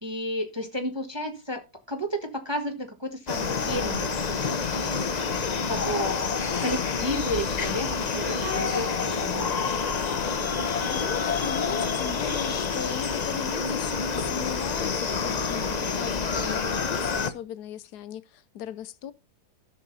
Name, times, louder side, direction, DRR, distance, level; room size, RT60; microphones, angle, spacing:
voice 1, 0.0-4.2 4.7-4.9 5.7-6.2 6.6-9.7, equal, 15° right, 1.3 m, -32 dB
sound 1, 3.3-17.3, left 5 dB, 40° left, 0.6 m, -28 dB
sound 2, 5.6-11.5, right 1 dB, 35° right, 3.9 m, -48 dB
voice 2, 10.6-19.1, left 10 dB, 75° left, 1.2 m, -37 dB
12.5 x 6.5 x 4.0 m
omnidirectional pair, 1.8 m